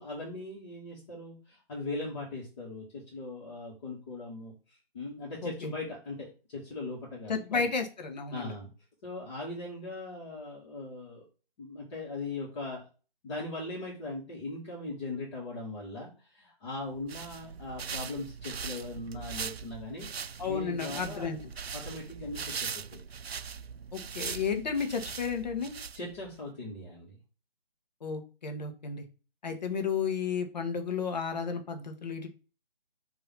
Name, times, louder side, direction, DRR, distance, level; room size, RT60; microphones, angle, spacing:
voice 1, 0.0-7.7 8.3-8.7 9.0-11.2 11.6-12.9 13.2-21.3 21.7-23.0 25.9-27.2, left 2 dB, 30° left, -6 dB, 2.1 m, -40 dB
voice 2, 5.4-5.7 7.3-8.5 20.4-21.4 23.9-25.7 28.0-29.0 29.4-32.3, left 5 dB, 45° left, 5 dB, 1.4 m, -32 dB
sound 1, 16.9-26.4, right 6 dB, 80° right, 0.5 m, -40 dB
5.5 x 3.1 x 5.6 m, 0.36 s
figure-of-eight pair, 145°, 30 cm